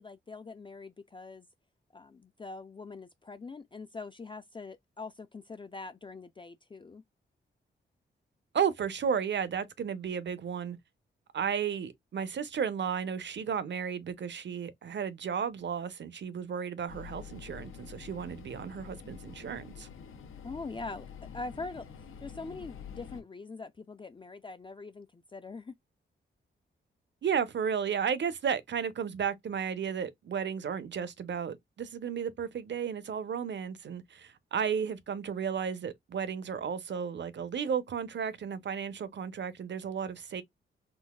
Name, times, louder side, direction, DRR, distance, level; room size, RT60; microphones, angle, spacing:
voice 1, 0.0-1.5 1.9-7.0 20.4-21.1 21.3-21.9 22.2-25.7, left 3 dB, 25° left, 0.4 m, -43 dB
voice 2, 8.5-10.8 11.3-19.9 27.2-40.4, right 7 dB, 60° right, 0.7 m, -33 dB
sound 1, 16.9-23.2, left 7 dB, 90° left, 0.7 m, -47 dB
3.9 x 2.4 x 2.3 m
cardioid pair, 85°, 20 cm